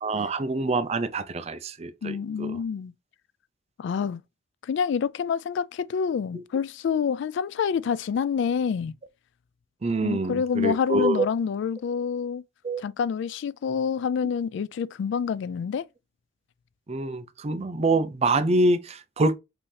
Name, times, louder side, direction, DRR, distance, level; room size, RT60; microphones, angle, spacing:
voice 1, 0.0-2.6 9.8-11.3 12.6-12.8 16.9-19.3, right 2 dB, 35° right, 0.5 m, -25 dB
voice 2, 2.0-2.9 3.8-4.2 4.6-8.9 10.0-12.4 12.8-15.9, left 6 dB, 65° left, 0.3 m, -27 dB
5.4 x 2.7 x 3.3 m
head